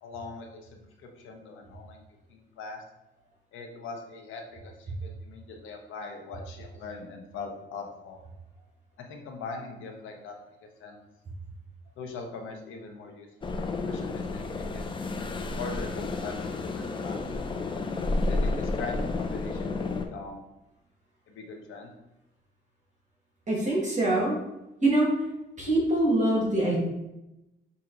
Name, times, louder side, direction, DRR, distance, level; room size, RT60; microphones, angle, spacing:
voice 1, 0.0-2.0 2.3-2.8 3.5-4.7 5.0-8.2 9.0-10.4 10.8-11.0 12.0-13.6 13.8-14.8 15.6-17.5 18.3-20.4 21.3-21.9, left 4 dB, 80° left, 3 dB, 0.8 m, -41 dB
sound 1, 13.4-20.1, left 3 dB, 25° left, 0.4 m, -31 dB
voice 2, 23.5-24.4 24.8-25.1 25.6-26.8, right 1 dB, 35° right, -4 dB, 1.5 m, -24 dB
5.8 x 2.7 x 2.6 m, 0.93 s
cardioid pair, 90°, 20 cm